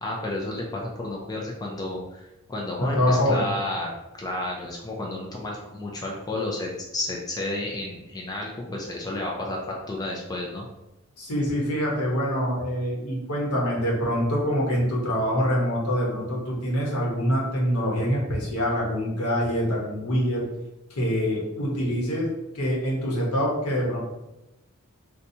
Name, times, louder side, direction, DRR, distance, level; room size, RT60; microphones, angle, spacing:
voice 1, 0.0-3.9 4.2-10.7, left 2 dB, 15° left, -2 dB, 0.4 m, -31 dB
voice 2, 2.8-3.5 11.2-20.4 20.9-24.0, equal, 75° left, -3 dB, 1.0 m, -25 dB
4.1 x 2.2 x 2.7 m, 0.95 s
head